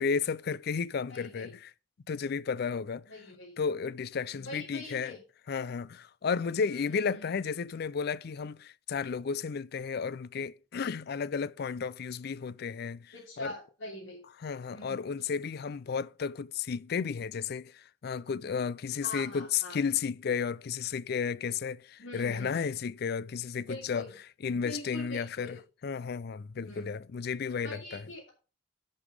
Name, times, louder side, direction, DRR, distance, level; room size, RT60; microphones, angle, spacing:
voice 1, 0.0-1.7 2.1-3.0 3.6-5.1 5.5-13.5 14.4-24.0 24.4-25.6 25.8-28.0, left 6 dB, 55° left, 0.4 m, -33 dB
voice 2, 1.1-1.5 3.1-3.5 4.3-5.2 6.7-7.3 13.1-14.2 14.7-15.0 19.0-19.8 22.0-22.6 23.7-24.1 24.5-25.6 26.6-27.0 27.6-28.3, left 2 dB, 70° left, 3.1 m, -43 dB
11.0 x 5.4 x 4.9 m
head